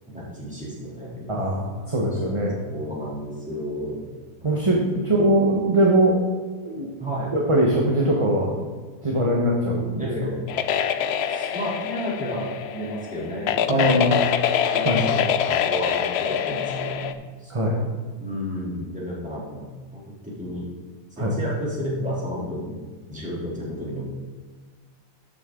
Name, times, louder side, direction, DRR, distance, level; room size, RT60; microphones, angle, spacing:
voice 1, 0.1-1.4 2.6-4.0 4.7-5.0 7.0-7.3 10.0-10.4 11.3-14.2 14.7-17.5 18.2-20.6 21.1-22.7 23.1-24.0, equal, 5° right, -7 dB, 2.9 m, -32 dB
voice 2, 1.3-2.6 4.4-4.8 5.0-6.2 6.6-6.9 7.3-8.5 9.0-10.1 13.7-14.2 14.8-15.0 17.5-17.8 21.2-21.3, right 1 dB, 25° right, -2 dB, 1.0 m, -21 dB
sound 1, 10.5-17.1, left 9 dB, 70° left, 0.6 m, -25 dB
12.5 x 6.4 x 3.8 m, 1.4 s
omnidirectional pair, 1.5 m